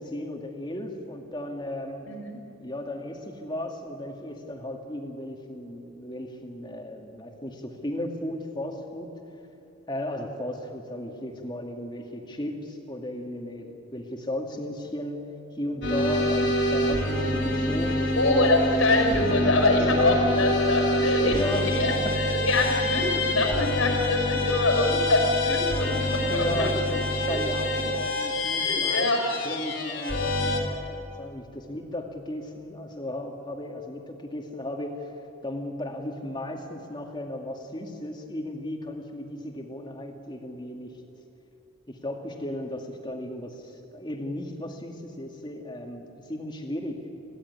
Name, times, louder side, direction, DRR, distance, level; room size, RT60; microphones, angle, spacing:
voice 1, 0.0-2.1 2.6-9.2 9.9-18.2 19.7-20.3 21.2-22.2 26.3-29.1 29.4-35.1 35.4-41.0 41.9-47.1, left 1 dB, 20° left, 2 dB, 2.4 m, -35 dB
sound 1, 15.8-30.6, left 1 dB, 60° left, 3.7 m, -26 dB
voice 2, 18.2-26.7 27.3-27.4 27.7-27.8 28.6-29.2, left 2 dB, 90° left, 3 dB, 5.9 m, -25 dB
27.0 x 16.5 x 9.9 m, 2.9 s
head